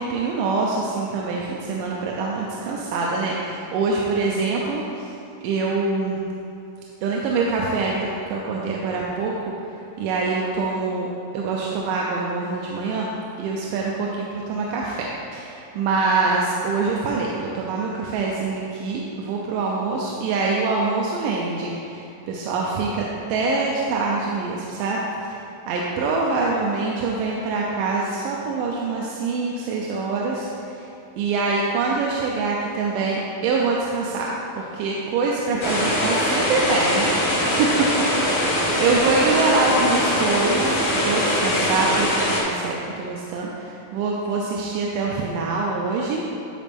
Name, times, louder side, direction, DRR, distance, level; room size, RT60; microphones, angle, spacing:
voice 1, 0.0-5.1 5.4-6.2 7.0-9.3 10.0-11.1 11.3-13.1 13.4-25.0 25.3-25.4 25.7-30.5 31.2-37.1 37.6-37.7 38.3-46.4, right 3 dB, 85° right, -3 dB, 2.2 m, -24 dB
sound 1, 35.6-42.4, left 1 dB, 70° left, 1.0 m, -22 dB
10.5 x 4.2 x 3.4 m, 2.7 s
omnidirectional pair, 3.8 m